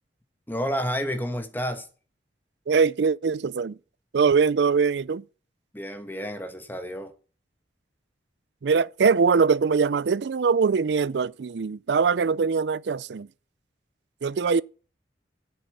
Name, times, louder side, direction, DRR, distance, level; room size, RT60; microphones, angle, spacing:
voice 1, 0.5-1.9 5.7-7.1, equal, 10° left, 1.3 m, -30 dB
voice 2, 2.7-3.8 4.1-5.2 8.6-13.3 14.2-14.6, right 5 dB, 70° right, 0.4 m, -22 dB
8.0 x 7.4 x 7.9 m
head